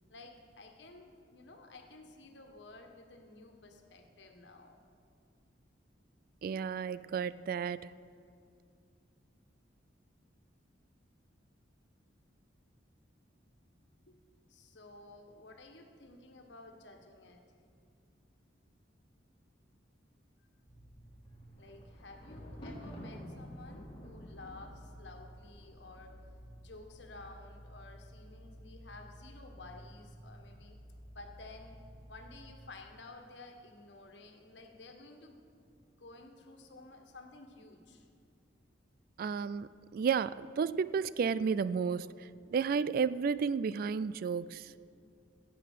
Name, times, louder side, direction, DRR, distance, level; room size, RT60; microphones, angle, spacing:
voice 1, 0.1-4.8 14.1-14.2 14.5-17.5 21.6-26.2 26.6-30.8 31.1-31.8 32.1-35.4 36.0-38.1, left 2 dB, 70° left, 4 dB, 1.5 m, -53 dB
voice 2, 6.4-7.9 39.2-44.7, right 6 dB, 50° right, 17 dB, 0.3 m, -32 dB
sound 1, 20.6-32.5, equal, 10° right, 3.5 m, -53 dB
Thunder, 21.2-26.4 27.1-27.6 27.9-28.0, equal, 25° left, 2.1 m, -49 dB
15.5 x 7.7 x 6.7 m, 2.4 s
head